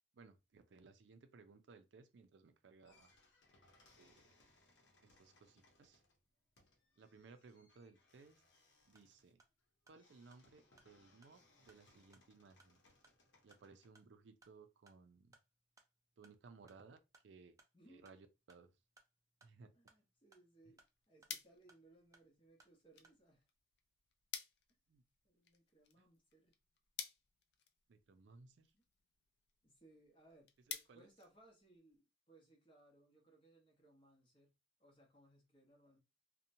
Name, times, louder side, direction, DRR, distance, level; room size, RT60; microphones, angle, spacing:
voice 1, 0.1-3.1 4.0-4.3 5.0-6.0 7.0-8.4 8.8-9.4 9.9-12.8 13.4-15.4 16.2-17.6 17.9-18.7 19.4-19.7 24.9-25.0 26.0-26.1 27.9-28.7 30.7-31.1, right 4 dB, 80° right, 0.4 m, -62 dB
sound 1, 2.8-13.9, left 2 dB, 80° left, 0.8 m, -71 dB
sound 2, 8.8-23.2, right 3 dB, 20° right, 0.4 m, -73 dB
voice 2, 19.7-23.5 24.7-24.8 25.2-26.5 28.2-28.9 29.6-30.5 30.9-36.0, right 1 dB, 30° left, 0.9 m, -67 dB
sound 3, 20.5-32.0, left 8 dB, 65° left, 0.4 m, -54 dB
2.8 x 2.1 x 2.6 m
head